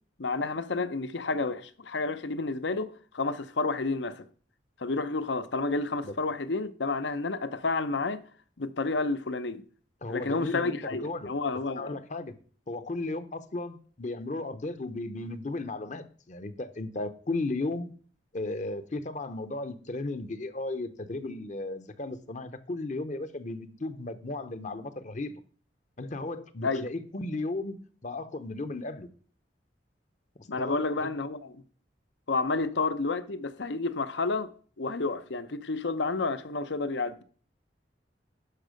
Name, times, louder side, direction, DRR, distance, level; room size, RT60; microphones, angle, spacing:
voice 1, 0.2-4.3 4.8-8.2 8.6-9.6 10.1-11.9 26.6-26.8 30.5-31.6 32.3-34.5 34.8-37.2, left 3 dB, 75° left, 0.8 m, -30 dB
voice 2, 10.0-11.3 11.7-12.3 12.7-17.9 18.3-25.3 26.0-27.8 28.0-29.1 30.6-31.1, left 2 dB, 40° left, 0.8 m, -35 dB
11.5 x 5.5 x 5.1 m
head